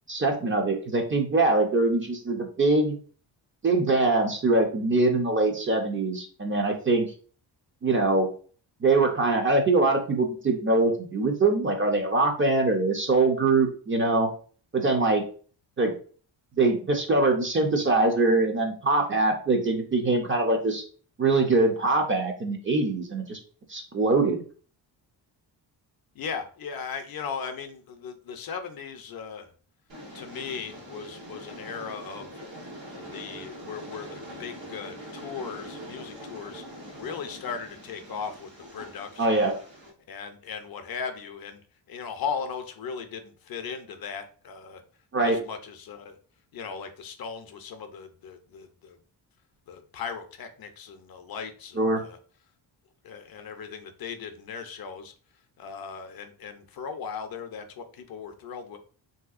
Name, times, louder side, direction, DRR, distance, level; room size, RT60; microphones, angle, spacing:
voice 1, 0.1-3.0 3.6-7.1 7.8-8.3 8.8-14.3 14.7-15.2 15.8-15.9 16.6-20.8 21.2-23.4 23.7-24.4 39.2-39.5 45.1-45.4 51.8-52.0, right 3 dB, 30° right, 3 dB, 0.4 m, -23 dB
voice 2, 26.2-29.5 30.1-32.3 32.9-36.6 37.0-39.5 40.1-41.6 41.9-44.8 45.2-46.2 46.5-49.0 49.7-52.2 53.0-55.1 55.6-58.8, left 6 dB, 55° left, 7 dB, 0.5 m, -37 dB
Train, 29.9-39.9, equal, 70° right, 1.2 m, -43 dB
3.2 x 2.7 x 2.4 m, 0.41 s
wide cardioid pair, 130°, 45 cm